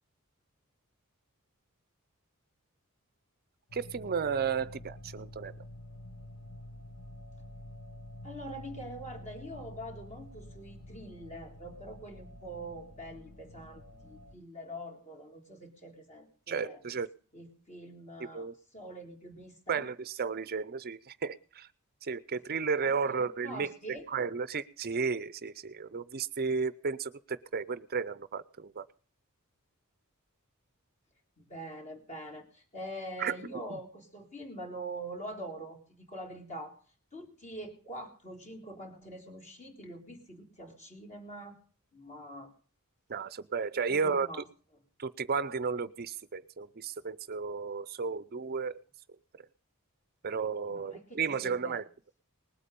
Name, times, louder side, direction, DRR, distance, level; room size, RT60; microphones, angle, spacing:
sound 1, 3.7-14.3, left 1 dB, 75° left, 1.6 m, -48 dB
voice 1, 3.7-5.5 16.5-17.1 18.3-18.5 19.7-21.7 22.0-23.7 24.1-28.9 33.2-33.4 33.7-33.8 43.1-44.3 45.0-48.7 50.2-51.8, right 5 dB, 45° right, 16 dB, 0.5 m, -33 dB
voice 2, 8.2-16.8 17.3-19.9 22.8-24.1 31.4-36.8 37.1-41.6 41.9-42.5 43.9-44.4 50.7-51.8, right 1 dB, 35° left, 3 dB, 3.8 m, -44 dB
20.0 x 8.5 x 5.2 m, 0.42 s
head